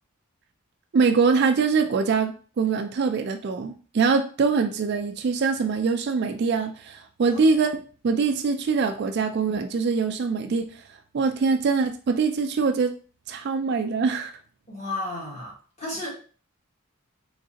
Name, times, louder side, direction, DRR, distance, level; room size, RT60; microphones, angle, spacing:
voice 1, 0.9-7.7 8.0-10.7 11.1-12.9 13.3-14.3, right 5 dB, 50° right, 7 dB, 0.3 m, -23 dB
voice 2, 14.7-16.2, left 2 dB, 30° left, -4 dB, 1.4 m, -33 dB
3.7 x 3.2 x 2.8 m, 0.39 s
head